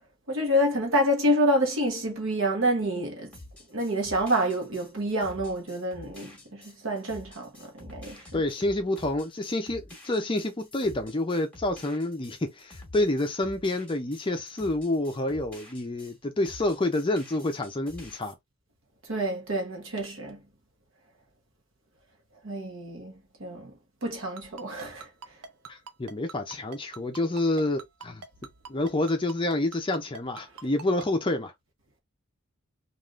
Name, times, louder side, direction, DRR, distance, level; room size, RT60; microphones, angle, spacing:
voice 1, 0.3-3.3 3.7-8.4 19.1-20.4 22.4-23.1 23.4-23.7 24.0-25.1, equal, 60° right, 0.9 m, -28 dB
sound 1, 3.3-16.2 16.4-18.3, left 1 dB, 5° left, 1.2 m, -48 dB
voice 2, 8.3-18.3 25.7-28.2 28.7-31.5, left 2 dB, 20° left, 0.5 m, -28 dB
Ringtone, 24.4-31.1, right 5 dB, 90° right, 0.5 m, -42 dB
3.4 x 2.4 x 2.4 m
head